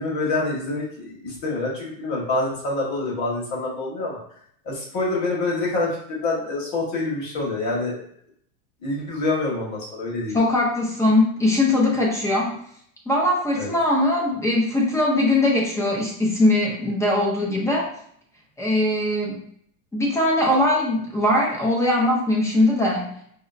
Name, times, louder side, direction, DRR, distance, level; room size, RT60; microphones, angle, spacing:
voice 1, 0.0-4.2 4.6-8.0 8.8-10.4 13.6-13.7, left 2 dB, 40° left, -3 dB, 1.5 m, -26 dB
voice 2, 10.3-12.6 13.1-17.9 18.6-19.4 19.9-23.1, left 1 dB, 5° left, -2 dB, 0.4 m, -21 dB
5.0 x 2.0 x 2.5 m, 0.65 s
supercardioid pair, 135°, 43 cm